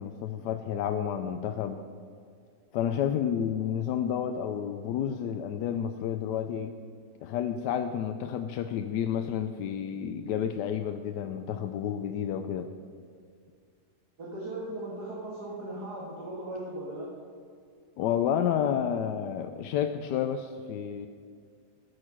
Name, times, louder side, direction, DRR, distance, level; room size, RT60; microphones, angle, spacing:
voice 1, 0.0-1.8 2.7-6.7 7.2-12.7 18.0-21.1, left 9 dB, 90° left, 7 dB, 1.2 m, -30 dB
voice 2, 14.2-17.1, right 1 dB, 70° right, -4 dB, 2.3 m, -38 dB
13.5 x 6.4 x 6.1 m, 2.2 s
omnidirectional pair, 1.8 m